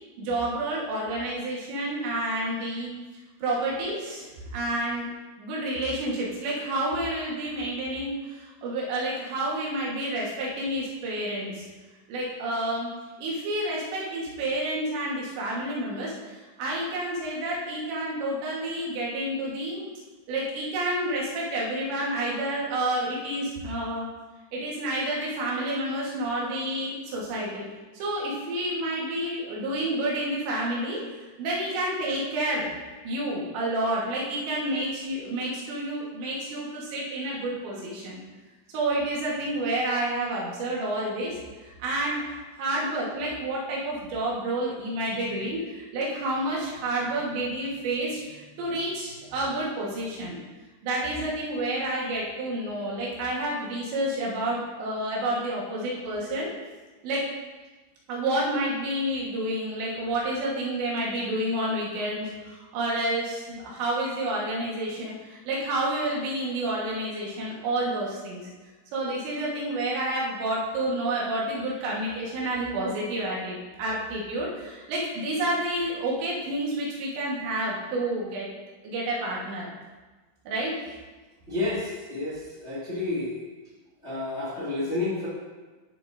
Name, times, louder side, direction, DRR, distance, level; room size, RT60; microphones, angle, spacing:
voice 1, 0.2-2.9 3.4-5.1 5.4-11.7 12.1-12.9 13.2-19.9 20.3-24.1 24.5-27.6 27.9-31.0 31.4-32.8 33.1-38.2 38.7-50.4 50.8-56.5 57.0-57.3 58.1-68.4 68.9-78.5 78.8-79.7 80.5-80.8, right 1 dB, 75° right, -4 dB, 3.8 m, -29 dB
voice 2, 81.5-83.4 84.0-85.3, left 2 dB, 65° left, -9 dB, 0.6 m, -30 dB
11.5 x 6.9 x 2.7 m, 1.3 s
omnidirectional pair, 5.2 m